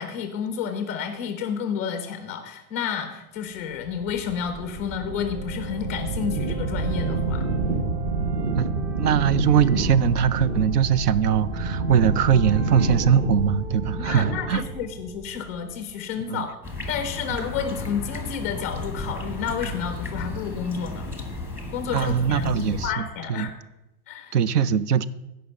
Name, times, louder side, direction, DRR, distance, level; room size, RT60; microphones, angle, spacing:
voice 1, 0.0-7.5 14.0-16.6 16.9-21.1 21.7-23.5 24.1-24.4, left 7 dB, 10° left, 7 dB, 0.3 m, -30 dB
sound 1, 3.8-15.9, right 3 dB, 40° right, 1.2 m, -28 dB
voice 2, 9.0-14.6 16.3-16.5 21.9-23.5 24.3-25.0, right 8 dB, 80° right, 19 dB, 0.7 m, -21 dB
sound 2, 16.6-22.9, left 2 dB, 5° right, 1.0 m, -34 dB
16.0 x 5.5 x 5.4 m, 0.93 s
hypercardioid pair, 145°, 46 cm